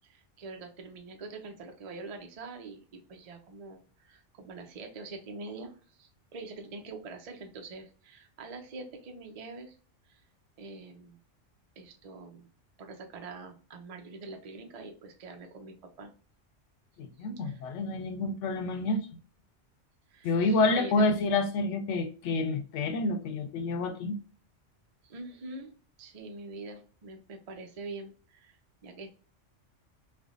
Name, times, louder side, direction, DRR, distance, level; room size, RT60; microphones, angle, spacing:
voice 1, 0.0-5.7 6.0-9.8 10.1-10.2 10.6-11.2 11.8-12.5 12.8-16.1 17.2-17.6 20.1-21.0 25.0-28.6 28.8-29.1, right 3 dB, 45° right, 0.5 m, -44 dB
voice 2, 17.0-19.0 20.2-24.2, left 3 dB, 75° left, 0.9 m, -28 dB
3.3 x 2.2 x 2.4 m
omnidirectional pair, 1.3 m